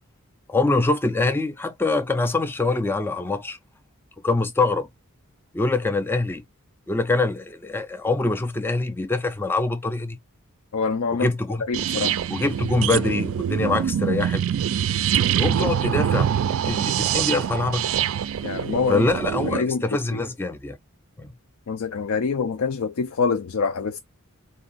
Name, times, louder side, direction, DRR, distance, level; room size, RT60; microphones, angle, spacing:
voice 1, 0.5-3.6 4.2-4.9 5.5-6.4 6.9-10.2 11.2-11.6 11.9-14.4 15.3-16.3 16.6-17.9 18.9-20.8 21.2-21.3, left 3 dB, 10° left, 0.3 m, -24 dB
voice 2, 10.7-11.3 11.6-12.1 18.4-19.1 19.4-19.8 20.1-20.2 21.7-24.0, left 5 dB, 70° left, 0.4 m, -25 dB
sound 1, 11.7-19.6, right 9 dB, 65° right, 0.3 m, -24 dB
3.8 x 2.7 x 3.9 m
head